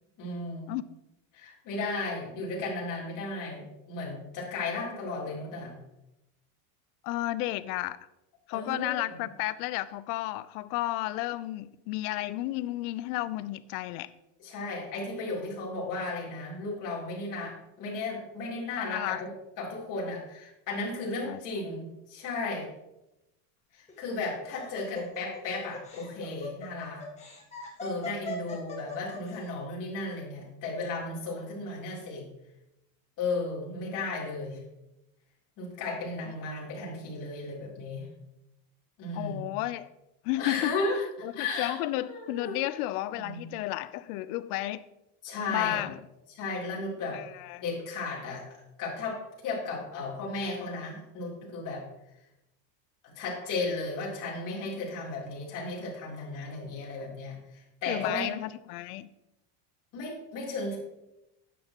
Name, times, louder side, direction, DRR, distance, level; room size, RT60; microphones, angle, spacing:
voice 1, 0.2-0.7 1.3-5.8 8.5-9.1 14.4-19.3 19.6-22.7 23.7-27.0 27.8-32.3 33.2-34.6 35.6-38.1 39.0-39.5 40.4-41.0 41.3-41.7 42.0-42.6 43.2-43.4 45.2-45.8 46.4-47.2 47.6-51.8 53.0-58.3 59.9-60.8, left 3 dB, 40° left, 3.6 m, -35 dB
voice 2, 7.0-8.0 8.5-14.1 18.8-19.2 21.2-21.4 24.9-25.0 39.1-39.9 40.2-40.8 41.2-44.9 45.5-46.0 47.1-47.6 57.9-59.1, left 16 dB, 70° left, 0.7 m, -32 dB
Laughter, 23.9-29.3, left 2 dB, 15° left, 1.6 m, -40 dB
12.0 x 9.5 x 3.0 m
cardioid pair, 160°, 47 cm